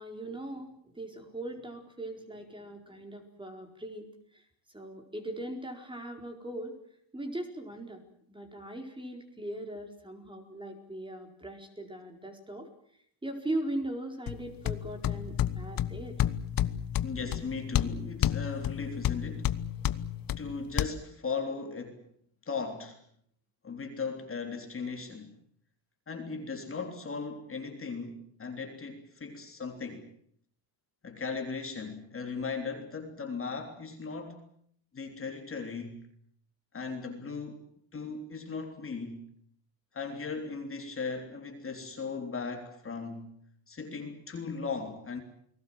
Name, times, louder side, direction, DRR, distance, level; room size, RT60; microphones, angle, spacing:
voice 1, 0.0-4.1 4.3-4.4 4.7-6.8 7.1-8.0 8.3-12.7 13.2-16.2, right 1 dB, 10° right, 4.5 m, -39 dB
sound 1, 14.3-20.9, left 11 dB, 45° left, 1.1 m, -31 dB
voice 2, 17.0-19.5 20.4-22.1 22.4-23.0 23.6-25.3 26.1-30.1 31.0-34.4 34.9-36.0 36.7-37.6 37.9-39.2 39.9-43.3 43.7-45.2, left 4 dB, 25° left, 3.4 m, -37 dB
29.5 x 20.0 x 7.7 m
cardioid pair, 140°, 50 cm